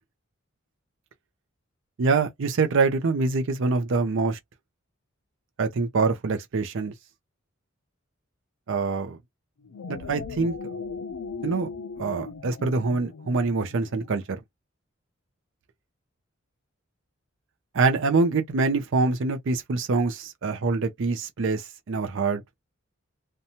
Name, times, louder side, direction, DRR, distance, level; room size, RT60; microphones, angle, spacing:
voice 1, 2.0-4.4 5.6-6.9 8.7-9.2 9.9-10.5 11.4-11.7 12.0-14.4 17.7-22.4, right 4 dB, 65° right, 0.5 m, -25 dB
sound 1, 9.6-14.2, left 4 dB, 85° left, 0.5 m, -38 dB
2.7 x 2.2 x 2.8 m
head